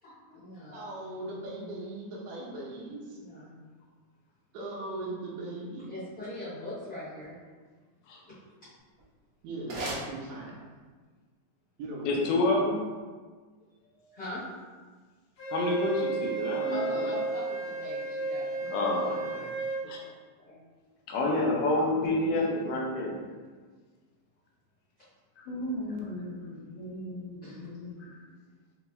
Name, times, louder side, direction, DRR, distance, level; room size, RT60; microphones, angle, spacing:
voice 1, 0.0-0.9 3.1-3.6 5.9-7.3 8.3-8.7 13.9-14.4 16.7-18.7 19.0-19.5 19.8-20.1 20.4-20.6 27.4-27.6, left 1 dB, 50° left, -13 dB, 1.3 m, -42 dB
voice 2, 0.7-3.2 4.5-5.9 9.4-10.5 11.8-12.2 21.1-22.5, right 2 dB, 85° right, -4 dB, 2.6 m, -39 dB
sound 1, 8.9-10.9, right 1 dB, 60° right, 1.8 m, -40 dB
voice 3, 12.1-12.8 15.5-17.1 18.7-19.4 19.9-20.0 21.1-23.1 25.4-27.9, left 2 dB, 85° left, -2 dB, 2.5 m, -29 dB
Wind instrument woodwind instrument, 15.4-19.8, right 3 dB, 70° left, 1.3 m, -33 dB
6.6 x 3.0 x 2.2 m, 1.4 s
omnidirectional pair, 4.4 m